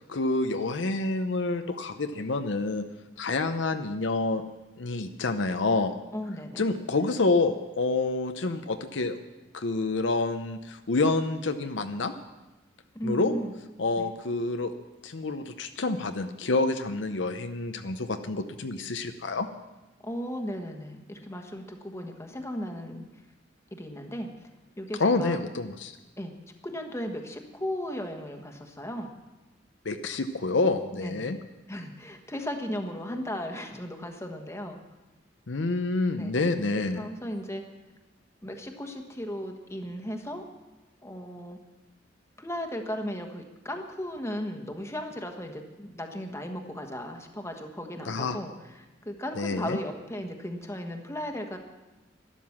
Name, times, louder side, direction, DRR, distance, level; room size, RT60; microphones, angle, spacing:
voice 1, 0.1-2.8 3.2-4.4 4.8-6.0 6.6-9.2 9.5-12.1 13.0-13.3 13.8-14.7 15.0-19.5 25.0-25.9 29.8-31.4 35.5-37.0 48.1-48.4 49.4-49.8, left 3 dB, 70° left, 8 dB, 0.8 m, -28 dB
voice 2, 6.1-6.6 12.9-13.5 14.0-14.1 20.0-23.1 23.7-24.3 24.8-25.4 26.2-26.3 26.6-29.1 30.9-31.3 31.7-34.8 36.1-36.3 37.0-37.6 38.4-40.4 41.0-41.6 42.4-51.6, equal, 15° left, 4 dB, 1.4 m, -36 dB
12.5 x 11.5 x 7.2 m, 1.1 s
head